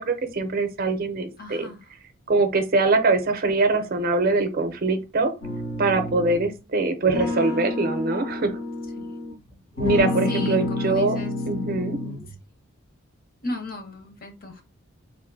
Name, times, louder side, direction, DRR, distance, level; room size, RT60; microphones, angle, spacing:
voice 1, 0.0-1.7 2.3-5.3 5.8-8.6 9.8-11.2 11.5-12.0, right 3 dB, 45° right, 7 dB, 0.5 m, -23 dB
voice 2, 1.4-1.9 9.0-9.1 10.3-11.3 13.4-14.6, left 2 dB, 45° left, 4 dB, 0.8 m, -36 dB
sound 1, 5.4-6.5 7.1-9.3 9.8-12.3, left 2 dB, 65° left, 1.6 m, -29 dB
3.5 x 2.6 x 2.6 m, 0.27 s
head